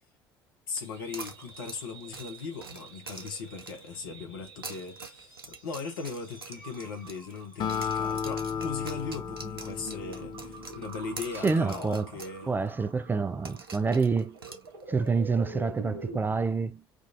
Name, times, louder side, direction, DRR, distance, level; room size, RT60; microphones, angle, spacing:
voice 1, 0.7-12.5, left 5 dB, 70° left, 0.9 m, -38 dB
sound 1, 0.7-16.2, right 3 dB, 65° right, 1.2 m, -47 dB
sound 2, 1.1-4.0 4.5-7.4 7.7-12.4 12.7-12.8 13.4-15.1, right 4 dB, 85° right, 0.5 m, -45 dB
Acoustic guitar, 7.6-11.2, left 7 dB, 40° left, 0.5 m, -34 dB
voice 2, 11.4-12.1 12.5-14.4 14.9-16.8, right 4 dB, 15° right, 0.4 m, -27 dB
3.6 x 2.4 x 2.5 m
figure-of-eight pair, 60°, 12 cm